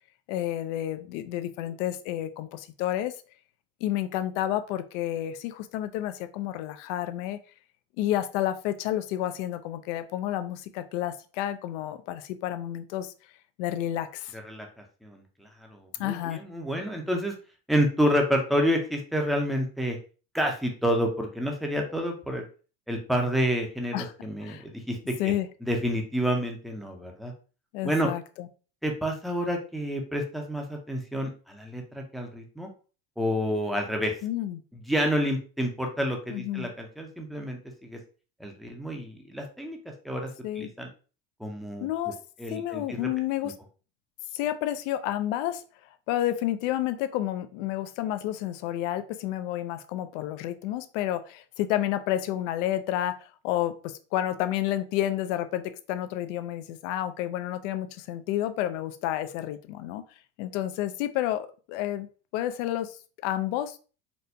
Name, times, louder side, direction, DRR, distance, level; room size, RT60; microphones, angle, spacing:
voice 1, 0.3-3.2 3.8-7.4 8.0-13.1 13.6-14.3 16.0-16.4 23.9-24.1 24.4-24.6 25.2-25.5 27.7-28.5 34.2-34.6 36.3-36.7 40.4-40.7 41.8-42.2 42.5-43.5 44.3-45.6 46.1-60.0 60.4-62.1 62.3-63.0 63.2-63.8, left 12 dB, 85° left, 10 dB, 0.5 m, -30 dB
voice 2, 14.3-14.7 15.0-17.3 17.7-20.0 20.3-22.4 22.9-25.3 25.6-27.3 27.8-28.1 28.8-32.7 33.2-34.1 34.9-38.0 38.4-39.8 40.0-40.3 40.6-40.9 41.4-41.9 42.4-43.1 43.4-43.5, equal, ahead, 2 dB, 0.4 m, -29 dB
4.2 x 2.2 x 2.6 m, 0.36 s
cardioid pair, 145°, 36 cm